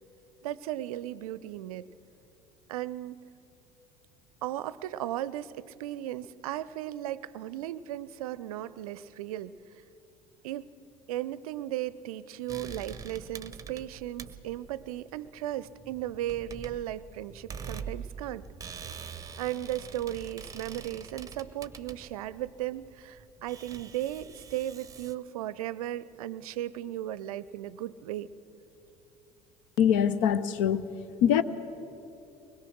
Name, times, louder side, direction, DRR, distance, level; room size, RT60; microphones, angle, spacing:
voice 1, 0.4-1.9 2.7-3.2 4.4-9.5 10.4-10.8 11.1-18.4 19.4-28.3, right 13 dB, 65° right, 18 dB, 0.6 m, -36 dB
sound 1, 12.5-25.1, right 6 dB, 15° right, 0.9 m, -45 dB
voice 2, 29.8-30.8 31.2-31.4, left 9 dB, 55° left, 15 dB, 0.8 m, -23 dB
22.5 x 21.0 x 6.2 m, 3.0 s
figure-of-eight pair, 65°, 20 cm